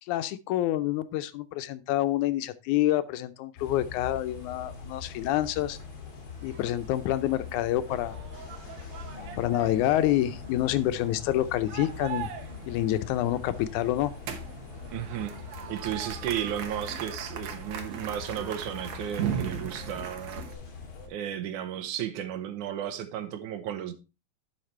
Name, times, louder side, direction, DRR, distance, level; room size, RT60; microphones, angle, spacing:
voice 1, 0.1-5.8 6.4-8.1 9.4-12.3 12.7-14.1, left 13 dB, 80° left, 2.1 m, -27 dB
sound 1, 3.6-21.1, left 6 dB, 45° left, 2.4 m, -43 dB
sound 2, 6.4-20.5, right 8 dB, 65° right, 2.2 m, -39 dB
voice 2, 14.9-15.4 15.7-20.5 21.1-23.9, right 10 dB, 85° right, 2.4 m, -34 dB
11.5 x 5.8 x 3.2 m
omnidirectional pair, 3.4 m